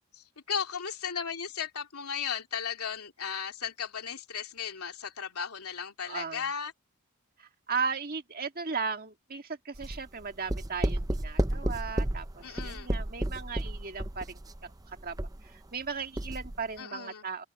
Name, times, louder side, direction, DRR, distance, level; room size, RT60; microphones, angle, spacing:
voice 1, 0.1-6.7 12.4-12.9 16.8-17.2, left 7 dB, 85° left, 2.8 m, -36 dB
voice 2, 6.1-6.5 7.4-17.4, right 5 dB, 40° right, 1.9 m, -37 dB
sound 1, 9.7-15.9 16.2-16.6, right 1 dB, 15° right, 0.6 m, -32 dB
head